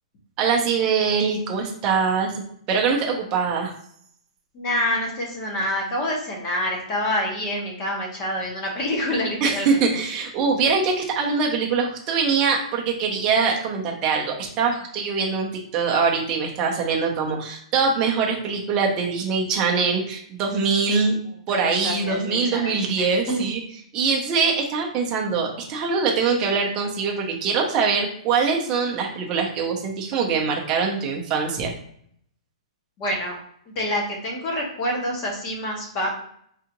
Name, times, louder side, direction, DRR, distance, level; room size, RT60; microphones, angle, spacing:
voice 1, 0.4-2.4 2.7-3.7 9.4-21.2 21.5-23.6 23.9-31.7, right 5 dB, 20° right, 0 dB, 0.6 m, -23 dB
voice 2, 4.5-9.8 21.5-23.4 33.0-33.4 33.7-36.1, left 1 dB, 25° left, 0 dB, 0.9 m, -27 dB
3.6 x 2.4 x 2.9 m, 0.66 s
hypercardioid pair, 170°, 4 cm